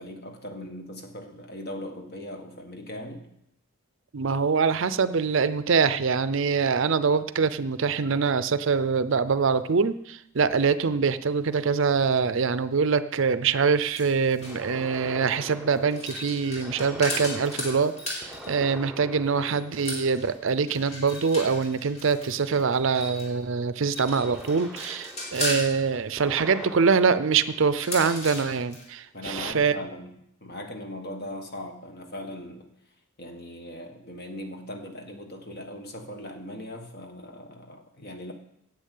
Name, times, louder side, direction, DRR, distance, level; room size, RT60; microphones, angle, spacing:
voice 1, 0.0-3.3 29.1-32.7 33.2-38.3, left 1 dB, 45° left, 5 dB, 1.6 m, -39 dB
voice 2, 4.1-29.8, right 5 dB, 60° right, 14 dB, 0.5 m, -24 dB
sound 1, 10.5-10.6 14.4-20.9 24.1-28.3 29.3-29.5, right 1 dB, 5° right, 1.0 m, -43 dB
sound 2, 13.8-14.7 15.7-18.6 19.4-23.3 23.8-25.7 27.6-28.8, left 1 dB, 30° left, 3.1 m, -36 dB
10.0 x 8.0 x 8.3 m, 0.78 s
head